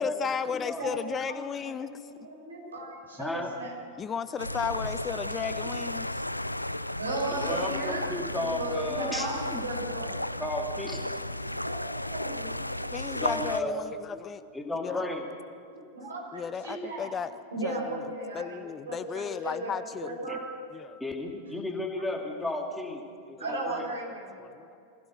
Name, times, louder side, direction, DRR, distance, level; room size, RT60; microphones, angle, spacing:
voice 1, 0.0-2.0 4.0-6.2 12.9-14.4 14.7-15.0 16.3-18.0 18.3-20.2 20.7-21.0 24.4-24.7, left 7 dB, 25° left, 14 dB, 0.6 m, -34 dB
voice 2, 0.8-1.4 1.8-3.7 7.0-8.1 8.4-9.4 9.6-10.2 11.6-12.5 15.9-17.1 17.5-18.6 18.8-20.4 23.4-24.3, right 2 dB, 75° right, -1 dB, 5.9 m, -36 dB
voice 3, 3.2-3.5 7.3-9.6 10.4-11.3 13.1-13.8 14.1-14.2 14.5-15.2 20.3-20.4 21.0-23.0 23.3-23.8, left 1 dB, 5° left, 2 dB, 2.4 m, -34 dB
sound 1, 4.4-13.6, left 1 dB, 85° left, 0.5 m, -34 dB
24.5 x 16.0 x 6.6 m, 2.5 s
figure-of-eight pair, 90°, 0 cm